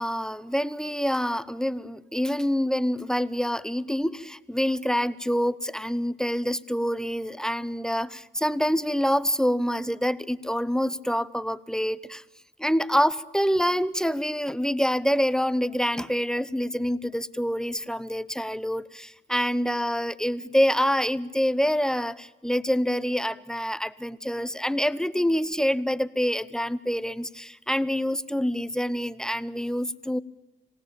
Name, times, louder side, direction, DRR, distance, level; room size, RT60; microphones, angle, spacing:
voice 1, 0.0-12.2 12.6-30.2, equal, 5° left, 16 dB, 0.8 m, -26 dB
27.0 x 17.5 x 8.9 m, 1.0 s
cardioid pair, 90°, 20 cm